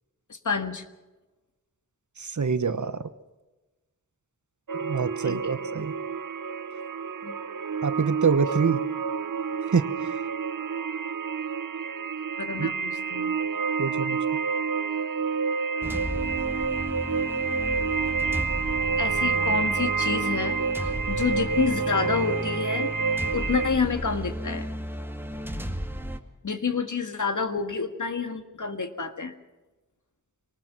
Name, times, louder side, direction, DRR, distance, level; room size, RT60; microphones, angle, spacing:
voice 1, 0.3-0.8 5.2-5.6 7.2-7.4 12.4-13.3 19.0-22.9 23.3-24.7 26.4-29.3, left 5 dB, 65° left, 7 dB, 1.8 m, -29 dB
voice 2, 2.2-3.1 4.8-5.9 7.8-8.8 9.7-10.2 12.6-12.7 13.8-14.2, right 5 dB, 65° right, 12 dB, 1.2 m, -26 dB
sound 1, 4.7-23.7, right 5 dB, 80° right, 0.9 m, -29 dB
sound 2, 15.8-26.2, right 1 dB, 5° right, 2.0 m, -34 dB
23.5 x 19.0 x 6.0 m, 1.1 s
wide cardioid pair, 55°, 32 cm